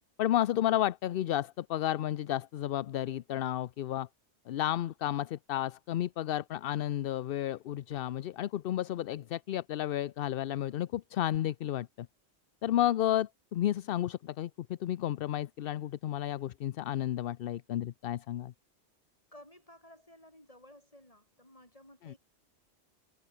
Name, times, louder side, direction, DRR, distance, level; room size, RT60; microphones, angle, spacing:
voice 1, 0.2-4.1 4.5-12.1 12.6-18.5 22.0-22.1, left 12 dB, 65° left, 0.7 m, -32 dB
voice 2, 19.3-22.2, left 1 dB, 30° left, 7.8 m, -55 dB
omnidirectional pair, 1.2 m